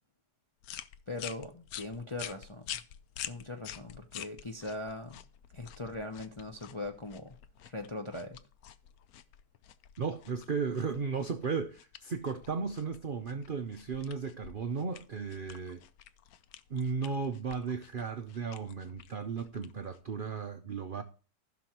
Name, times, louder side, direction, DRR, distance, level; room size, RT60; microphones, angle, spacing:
sound 1, 0.6-20.2, left 11 dB, 70° left, 1.0 m, -48 dB
voice 1, 1.1-2.6 3.2-5.2 5.5-7.4 7.6-8.4, left 2 dB, 30° left, 0.5 m, -40 dB
voice 2, 10.0-15.8 16.7-21.0, right 5 dB, 80° right, 0.4 m, -35 dB
15.5 x 6.2 x 2.9 m
omnidirectional pair, 1.9 m